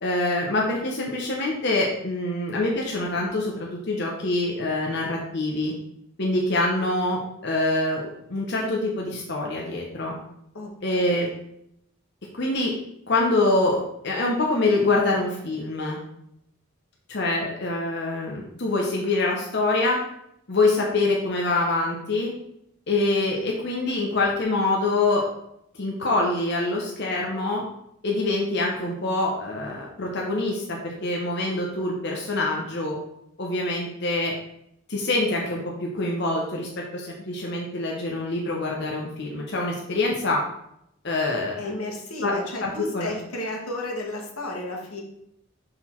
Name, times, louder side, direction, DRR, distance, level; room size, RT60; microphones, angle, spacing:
voice 1, 0.0-5.7 6.2-8.0 8.3-10.1 10.8-11.3 12.4-12.7 13.1-16.0 17.1-20.0 20.5-22.3 22.9-25.3 25.8-27.6 28.0-33.0 33.4-34.3 34.9-40.4 41.0-41.7 42.2-42.3 42.6-43.1, left 2 dB, 50° left, -2 dB, 0.9 m, -25 dB
voice 2, 10.5-11.3 41.6-45.0, left 1 dB, 85° left, 0 dB, 1.5 m, -33 dB
6.5 x 3.9 x 4.5 m, 0.77 s
head